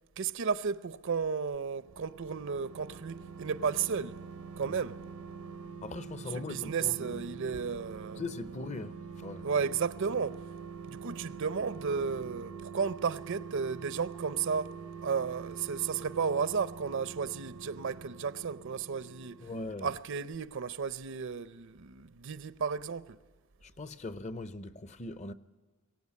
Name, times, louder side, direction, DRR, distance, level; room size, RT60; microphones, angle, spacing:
voice 1, 0.2-4.2 4.6-5.0 6.3-8.2 9.4-10.4 10.9-14.7 15.0-19.4 19.8-23.2, right 6 dB, 60° right, 0.6 m, -33 dB
sound 1, 1.7-20.0 20.3-20.4, right 6 dB, 90° right, 1.0 m, -45 dB
voice 2, 5.8-7.2 8.1-9.5 19.4-19.9 23.6-25.3, left 2 dB, 35° left, 0.7 m, -40 dB
23.0 x 17.5 x 8.4 m
head